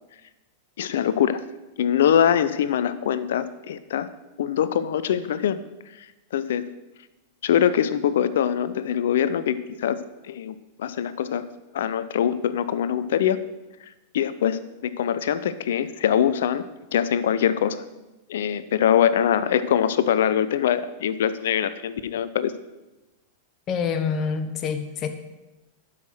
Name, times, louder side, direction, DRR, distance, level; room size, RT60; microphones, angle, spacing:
voice 1, 0.8-1.4 1.8-4.1 4.4-5.6 6.3-6.7 7.4-11.5 11.7-13.5 14.1-16.7 16.9-17.8 18.3-22.5, left 9 dB, 65° left, 14 dB, 0.6 m, -23 dB
voice 2, 23.7-25.1, left 6 dB, 35° left, 8 dB, 1.1 m, -26 dB
12.0 x 5.9 x 6.4 m, 1.1 s
figure-of-eight pair, 95°, 0 cm